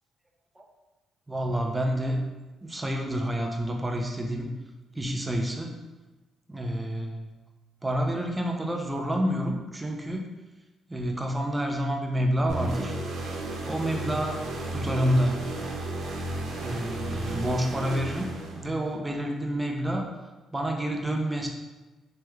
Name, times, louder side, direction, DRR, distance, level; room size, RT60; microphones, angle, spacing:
voice 1, 1.3-2.3 2.6-4.6 5.0-5.7 6.5-7.3 7.8-10.3 10.9-12.9 13.7-14.4 14.7-15.6 16.6-20.1 20.5-21.5, equal, 15° right, 1 dB, 0.5 m, -28 dB
sound 1, 12.5-18.9, right 1 dB, 80° right, 0.5 m, -33 dB
3.2 x 3.0 x 2.3 m, 1.2 s
cardioid pair, 90°, 0 cm